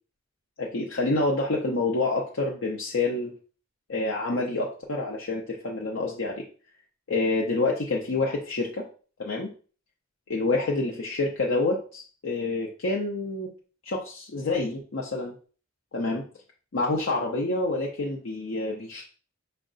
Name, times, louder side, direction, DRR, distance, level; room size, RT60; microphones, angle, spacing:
voice 1, 0.6-3.3 3.9-6.4 7.1-8.8 9.2-9.5 10.3-13.5 13.9-15.3 15.9-16.2 16.7-19.0, left 2 dB, 85° left, -2 dB, 0.7 m, -27 dB
5.3 x 2.2 x 3.7 m, 0.39 s
head